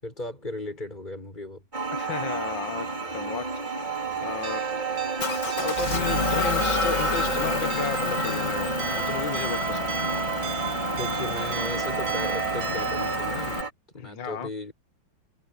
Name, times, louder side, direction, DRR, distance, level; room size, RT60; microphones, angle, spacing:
voice 1, 0.0-1.6 11.0-13.7 13.9-14.7, left 2 dB, 20° left, 7.3 m, -36 dB
sound 1, 1.7-13.7, right 5 dB, 25° right, 3.5 m, -31 dB
voice 2, 1.9-2.9 3.1-3.5 4.2-4.7 5.6-8.7 9.1-10.0 14.0-14.5, left 7 dB, 75° left, 2.2 m, -33 dB
sound 2, 4.4-13.2, right 8 dB, 85° right, 2.3 m, -34 dB
Motor vehicle (road) / Engine, 5.2-13.6, left 4 dB, 40° left, 2.8 m, -30 dB
omnidirectional pair, 2.1 m